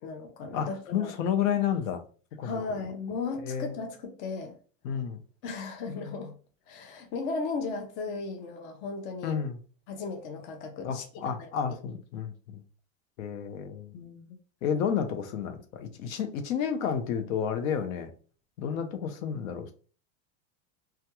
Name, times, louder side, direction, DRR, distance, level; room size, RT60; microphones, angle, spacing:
voice 1, 0.0-1.1 2.4-4.5 5.4-6.4 6.7-9.4 9.9-11.1 11.4-11.5 13.9-14.4 18.6-18.8, left 4 dB, 30° left, 0.4 m, -36 dB
voice 2, 0.5-2.0 2.4-2.5 3.4-3.7 4.8-5.2 9.2-9.6 10.8-12.6 13.2-14.0 14.6-18.1 18.6-19.7, left 8 dB, 80° left, 0.7 m, -31 dB
2.2 x 2.2 x 2.8 m
supercardioid pair, 145°, 40 cm